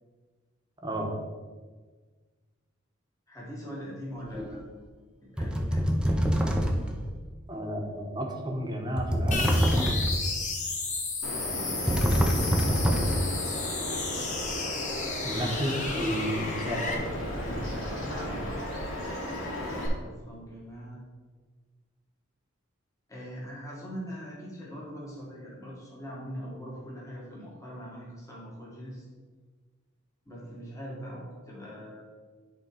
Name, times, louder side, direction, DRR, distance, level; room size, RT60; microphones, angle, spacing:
voice 1, 3.3-4.7 5.2-5.9 17.8-18.7 20.0-21.0 23.1-29.1 30.3-32.0, equal, 15° left, -5 dB, 1.8 m, -41 dB
sound 1, 4.3-4.6 5.4-7.0 9.0-10.3 11.9-13.4, equal, 5° right, 0.6 m, -25 dB
voice 2, 7.5-9.9 15.2-17.1, equal, 20° right, 1 dB, 1.1 m, -32 dB
sound 2, 9.3-16.9, left 4 dB, 35° left, 1.1 m, -33 dB
Bird vocalization bird call bird song, 11.2-19.9, equal, 85° left, 2.0 m, -35 dB
10.5 x 3.6 x 4.9 m, 1.4 s
head